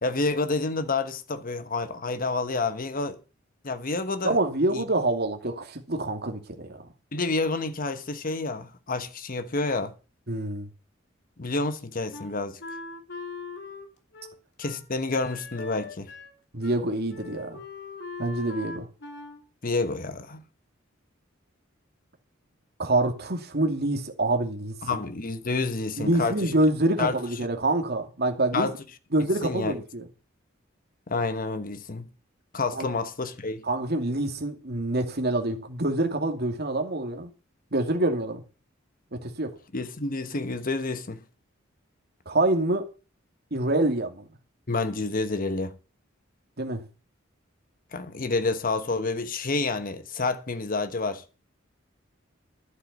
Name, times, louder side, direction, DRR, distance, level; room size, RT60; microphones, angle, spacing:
voice 1, 0.0-3.2 3.6-4.4 4.7-4.8 7.1-9.9 11.4-12.6 14.6-16.1 19.6-20.4 24.8-26.5 27.0-27.2 28.5-28.7 29.4-29.7 31.1-32.1 32.5-33.6 39.7-41.2 44.7-45.8 47.9-51.2, left 3 dB, 45° left, 1.2 m, -29 dB
voice 2, 4.2-6.8 10.3-10.7 16.5-17.6 18.2-18.9 22.8-24.8 26.0-28.7 29.1-30.0 32.7-32.9 33.6-37.3 37.7-38.4 39.1-39.5 42.3-42.9 43.5-44.3 46.6-46.8, right 2 dB, 55° right, 2.5 m, -26 dB
Wind instrument woodwind instrument, 12.1-16.4 16.6-16.8 17.1-19.4, left 4 dB, 60° left, 2.6 m, -40 dB
11.5 x 8.1 x 6.2 m
head